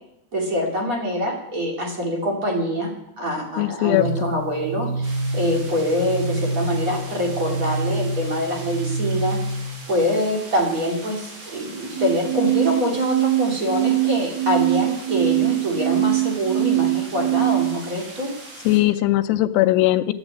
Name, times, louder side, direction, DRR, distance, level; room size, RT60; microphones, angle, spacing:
voice 1, 0.3-2.9 3.2-9.4 9.9-18.3, left 1 dB, 25° right, 0 dB, 2.0 m, -25 dB
voice 2, 3.6-4.3 18.7-20.1, left 16 dB, 85° left, 10 dB, 2.7 m, -19 dB
sound 1, 3.9-9.9 11.9-17.9, right 9 dB, 80° right, 2.4 m, -24 dB
sound 2, 5.0-18.8, right 2 dB, 60° right, 4.4 m, -41 dB
12.5 x 8.0 x 8.3 m, 0.81 s
omnidirectional pair, 4.8 m